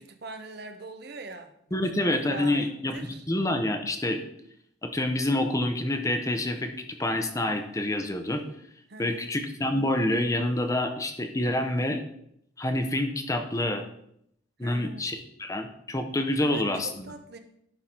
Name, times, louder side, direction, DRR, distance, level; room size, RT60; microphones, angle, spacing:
voice 1, 0.0-1.8 2.1-3.2 8.9-9.3 14.6-15.2 16.4-17.4, right 3 dB, 60° right, 7 dB, 0.7 m, -42 dB
voice 2, 1.7-4.2 4.8-8.4 9.0-12.0 12.6-13.8 14.6-16.9, left 1 dB, 20° left, 6 dB, 0.7 m, -27 dB
11.0 x 3.8 x 4.4 m, 0.72 s
head